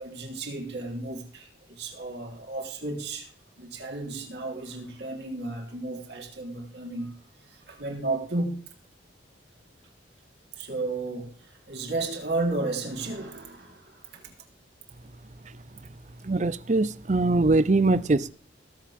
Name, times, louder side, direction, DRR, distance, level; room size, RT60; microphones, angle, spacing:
voice 1, 0.0-8.6 10.5-14.4, right 2 dB, 60° right, 3.8 m, -33 dB
voice 2, 16.2-18.3, right 2 dB, 40° right, 0.6 m, -22 dB
21.0 x 7.4 x 3.6 m
head